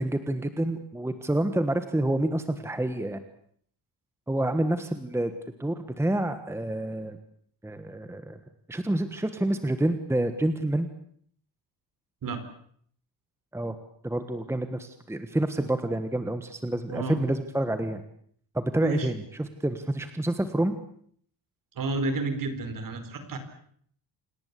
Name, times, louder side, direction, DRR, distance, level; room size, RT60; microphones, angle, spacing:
voice 1, 0.0-3.2 4.3-5.3 5.6-7.2 7.6-8.4 8.7-10.9 13.5-13.7 14.0-18.0 18.5-20.7, right 1 dB, 5° right, 9 dB, 1.4 m, -28 dB
voice 2, 16.9-17.2 18.8-19.1 21.7-23.4, right 3 dB, 50° right, 10 dB, 4.7 m, -31 dB
28.0 x 19.0 x 8.4 m, 0.62 s
cardioid pair, 170°, 44 cm